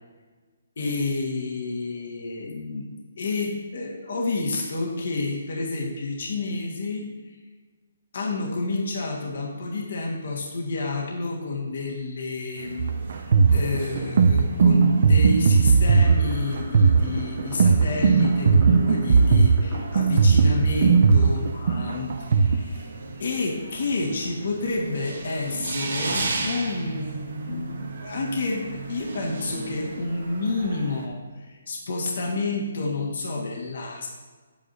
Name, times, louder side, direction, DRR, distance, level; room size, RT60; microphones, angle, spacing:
voice 1, 0.8-2.9 3.2-7.4 8.1-22.9 23.2-34.1, left 3 dB, 55° left, -1 dB, 1.5 m, -29 dB
sound 1, 12.5-31.1, right 3 dB, 70° right, 1.2 m, -37 dB
sound 2, 12.8-22.6, right 5 dB, 45° right, 0.5 m, -18 dB
sound 3, 16.0-23.0, right 1 dB, 15° right, 1.4 m, -40 dB
9.4 x 8.5 x 2.7 m, 1.4 s
hypercardioid pair, 170°, 0 cm